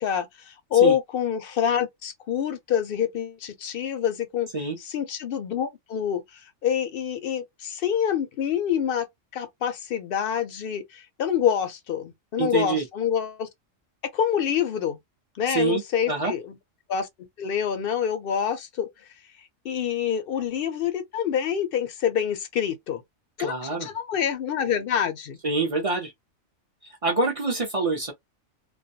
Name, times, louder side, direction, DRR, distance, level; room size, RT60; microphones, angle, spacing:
voice 1, 0.0-4.5 4.8-9.1 9.3-13.5 14.1-15.0 15.4-16.5 16.9-17.1 17.4-18.9 19.6-23.0 23.4-25.4, left 8 dB, 60° left, 0.6 m, -26 dB
voice 2, 12.4-12.8 15.5-16.3 23.4-23.9 25.4-26.1 27.0-28.1, right 3 dB, 40° right, 0.5 m, -26 dB
2.3 x 2.2 x 2.6 m
omnidirectional pair, 1.3 m